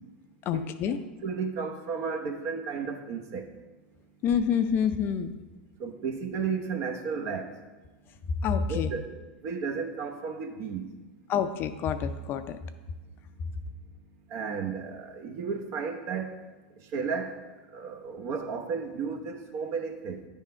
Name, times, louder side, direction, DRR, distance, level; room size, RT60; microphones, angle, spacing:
voice 1, 0.4-1.0 4.2-5.3 8.4-8.9 11.3-12.6, left 7 dB, 40° left, 10 dB, 0.5 m, -27 dB
voice 2, 1.2-3.5 5.8-7.5 8.7-10.9 14.3-16.4 16.9-17.3 17.7-20.3, right 5 dB, 50° right, 5 dB, 0.9 m, -33 dB
9.6 x 3.6 x 4.4 m, 1.2 s
hypercardioid pair, 100°, 5 cm